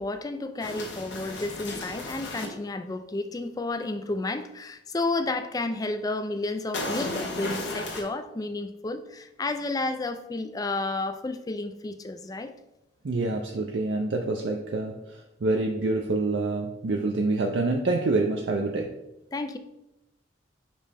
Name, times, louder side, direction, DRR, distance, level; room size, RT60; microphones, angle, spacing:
voice 1, 0.0-12.5 19.3-19.6, left 2 dB, 20° left, 0.4 m, -31 dB
sound 1, 0.6-2.5 6.7-8.0, left 2 dB, 70° left, 1.2 m, -34 dB
voice 2, 13.0-19.0, right 2 dB, 65° right, 0.5 m, -27 dB
5.3 x 5.2 x 3.4 m
head